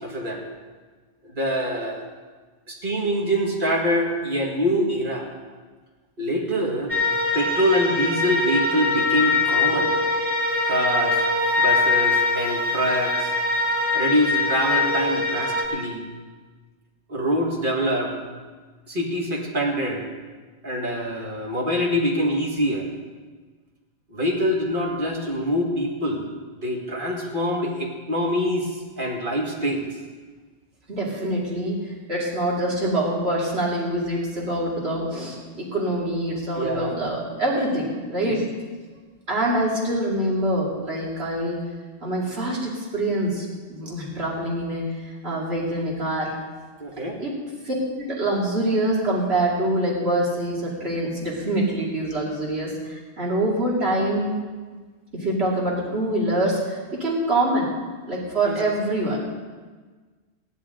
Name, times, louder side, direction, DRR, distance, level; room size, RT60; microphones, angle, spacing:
voice 1, 0.0-0.4 1.3-2.0 2.7-5.3 6.2-6.9 7.3-9.9 10.6-11.2 11.6-13.3 13.9-16.0 17.1-18.2 18.9-20.1 20.6-22.9 24.1-26.2 26.6-28.7 29.0-29.9 36.6-37.0 38.2-38.4 46.8-47.2 58.4-58.6, equal, 50° right, -1 dB, 2.0 m, -25 dB
sound 1, 6.9-15.7, left 3 dB, 10° right, 2.3 m, -23 dB
voice 2, 30.9-38.4 39.3-41.6 42.0-46.3 47.2-47.3 47.6-54.3 55.1-57.7 58.1-59.2, right 1 dB, 70° right, -4 dB, 2.8 m, -25 dB
16.5 x 11.0 x 3.8 m, 1.4 s
omnidirectional pair, 1.1 m